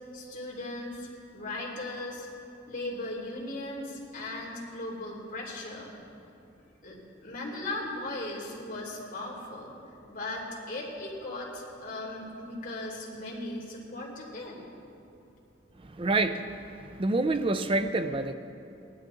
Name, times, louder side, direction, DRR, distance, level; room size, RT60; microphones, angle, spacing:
voice 1, 0.1-2.3 2.7-5.9 6.8-9.7 10.1-14.6, left 2 dB, 45° left, 2.8 m, -38 dB
voice 2, 15.8-18.3, right 2 dB, 25° right, 0.5 m, -28 dB
17.5 x 11.5 x 3.8 m
head